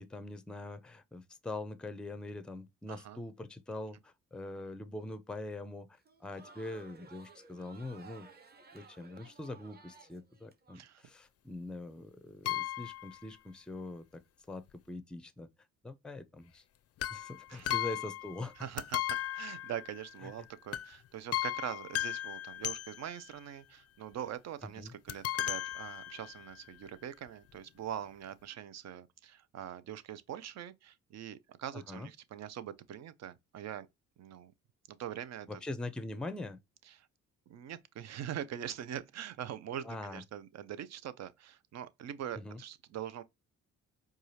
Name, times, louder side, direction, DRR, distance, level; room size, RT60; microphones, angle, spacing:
voice 1, 0.0-8.3 8.7-14.2 14.5-15.5 15.8-16.6 17.1-18.7 20.2-20.3 24.8-24.9 31.7-32.1 35.5-36.6 39.8-40.2 42.4-42.6, left 2 dB, 5° left, 0.5 m, -43 dB
voice 2, 2.9-3.2 10.7-11.0 17.5-17.8 18.6-33.9 34.2-34.5 34.9-35.6 36.9-37.1 37.5-43.2, right 10 dB, 60° right, 0.6 m, -43 dB
Crowd, 6.0-10.8, right 4 dB, 30° right, 1.1 m, -56 dB
sound 1, 12.4-13.2 17.0-18.5 18.8-20.3 20.7-21.0 21.3-23.3 25.1-26.5 27.3-27.4 27.5-27.6, left 13 dB, 55° left, 0.4 m, -36 dB
4.7 x 2.4 x 2.8 m
cardioid pair, 90°, 30 cm